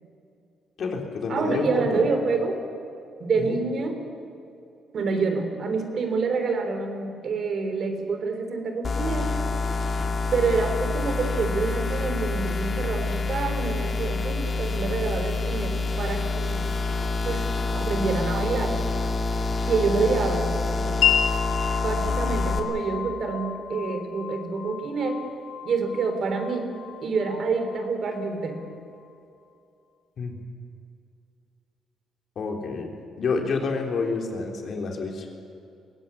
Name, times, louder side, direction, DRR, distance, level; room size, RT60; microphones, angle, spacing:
voice 1, 0.8-2.1 3.4-3.6 30.2-30.4 32.4-32.9 33.2-35.3, left 4 dB, 60° left, 2 dB, 3.7 m, -28 dB
voice 2, 1.3-2.6 3.2-4.0 4.9-9.3 10.3-16.7 17.2-18.8 19.7-21.0 21.8-25.2 25.6-26.7 27.0-28.6, right 4 dB, 55° right, 6 dB, 3.6 m, -27 dB
sound 1, 8.8-22.6, left 3 dB, 40° left, 2.6 m, -27 dB
Wind chime, 21.0-28.7, left 9 dB, 85° left, 2.4 m, -31 dB
21.5 x 16.5 x 9.8 m, 2.6 s
cardioid pair, 90°, 0 cm